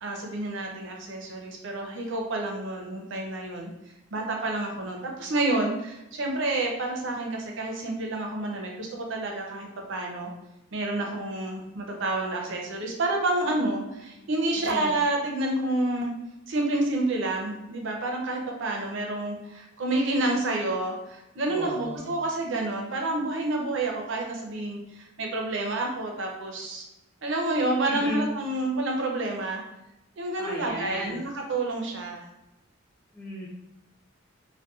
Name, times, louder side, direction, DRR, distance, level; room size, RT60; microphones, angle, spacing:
voice 1, 0.0-3.7 4.1-10.3 10.7-16.1 16.5-26.8 27.2-29.6 30.2-32.2, right 2 dB, 60° right, 0 dB, 0.5 m, -29 dB
voice 2, 14.5-14.9 21.5-22.1 27.9-28.3 30.4-31.2 33.1-33.5, left 1 dB, 10° left, -7 dB, 0.4 m, -34 dB
2.6 x 2.1 x 2.3 m, 0.91 s
head